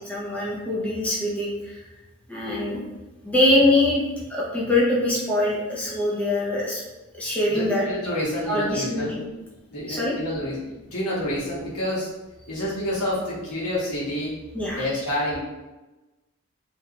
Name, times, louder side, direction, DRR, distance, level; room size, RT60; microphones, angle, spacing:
voice 1, 0.1-1.8 2.3-2.8 3.2-6.8 7.1-7.8 8.5-9.2 9.9-10.1 14.5-14.8, left 1 dB, 5° left, -6 dB, 0.4 m, -23 dB
voice 2, 7.5-9.1 9.7-12.1 12.5-14.4 14.7-15.4, left 1 dB, 85° left, -7 dB, 1.2 m, -28 dB
2.8 x 2.3 x 2.9 m, 1.1 s
head